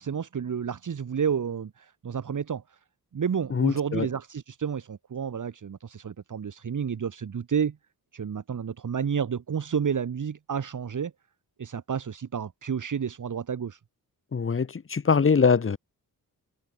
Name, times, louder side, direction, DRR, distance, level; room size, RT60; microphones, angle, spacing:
voice 1, 0.0-2.6 3.1-7.8 8.1-11.1 11.6-13.8, right 7 dB, 55° right, 2.4 m, -30 dB
voice 2, 3.5-4.1 14.3-15.8, left 5 dB, 35° left, 1.5 m, -23 dB
wide cardioid pair, 120°, 36 cm